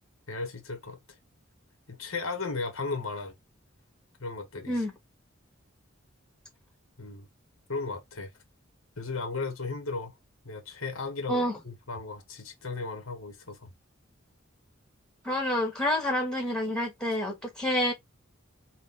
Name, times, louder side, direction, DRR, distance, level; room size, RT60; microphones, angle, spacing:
voice 1, 0.3-1.0 1.9-3.3 4.2-4.8 7.0-7.3 7.7-8.3 9.0-10.1 10.4-13.7, left 3 dB, 85° left, 1.5 m, -35 dB
voice 2, 15.2-17.9, left 1 dB, 5° left, 1.8 m, -28 dB
4.3 x 2.6 x 3.7 m
head